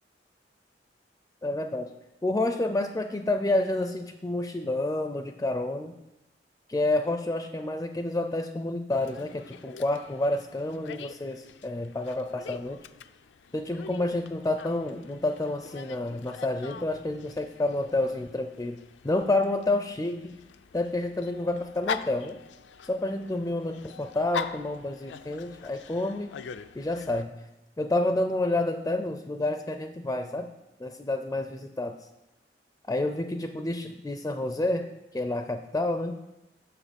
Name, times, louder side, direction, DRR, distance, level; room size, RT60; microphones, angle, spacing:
voice 1, 1.4-1.9 2.2-5.9 6.7-12.8 13.5-18.8 19.0-20.3 20.7-22.4 22.8-26.3 26.7-27.3 27.8-30.5 30.8-31.9 32.9-34.9 35.1-36.1, left 2 dB, 15° left, 7 dB, 0.4 m, -29 dB
Dog, 8.9-27.2, left 6 dB, 80° left, 0.4 m, -43 dB
7.4 x 6.4 x 5.2 m, 0.94 s
head